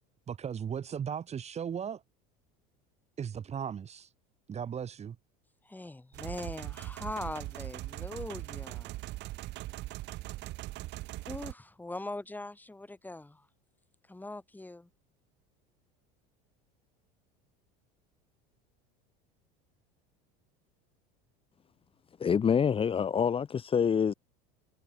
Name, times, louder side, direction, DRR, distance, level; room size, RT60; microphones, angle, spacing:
voice 1, 0.3-2.0 3.2-4.1 4.5-5.2, right 8 dB, 30° right, 3.7 m, -36 dB
voice 2, 5.6-9.0 11.2-13.5 14.1-14.9, left 2 dB, 10° left, 7.9 m, -41 dB
sound 1, 6.1-11.5, right 18 dB, 55° right, 2.8 m, -40 dB
voice 3, 22.2-24.1, left 7 dB, 25° left, 1.7 m, -26 dB
supercardioid pair, 110°, 21 cm